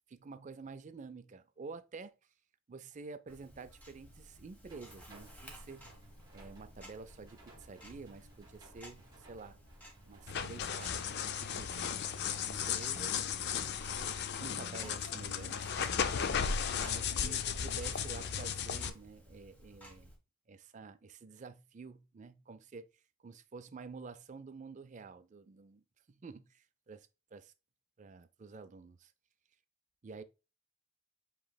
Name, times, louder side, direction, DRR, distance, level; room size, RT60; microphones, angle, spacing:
voice 1, 0.1-2.1 2.7-5.9 6.3-9.6 10.1-11.9 12.4-13.2 14.4-16.0 16.8-20.1 20.5-22.9 23.2-25.8 26.2-27.5 28.0-29.1 30.0-30.2, right 4 dB, 35° right, 0.3 m, -49 dB
Tick-tock, 3.3-20.2, equal, 5° left, 1.0 m, -56 dB
sound 1, 4.7-14.0, right 2 dB, 20° right, 1.2 m, -60 dB
sound 2, 10.3-18.9, left 7 dB, 50° left, 0.4 m, -35 dB
7.5 x 3.0 x 2.2 m
head